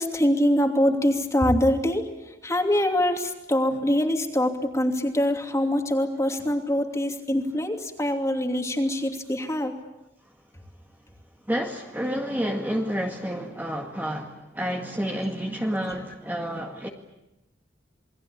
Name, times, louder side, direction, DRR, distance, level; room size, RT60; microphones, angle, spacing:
voice 1, 0.0-2.1 2.4-9.7, left 1 dB, 15° left, 3 dB, 2.9 m, -24 dB
voice 2, 11.5-16.9, equal, 10° right, 1 dB, 2.0 m, -29 dB
28.5 x 21.5 x 8.5 m, 0.95 s
head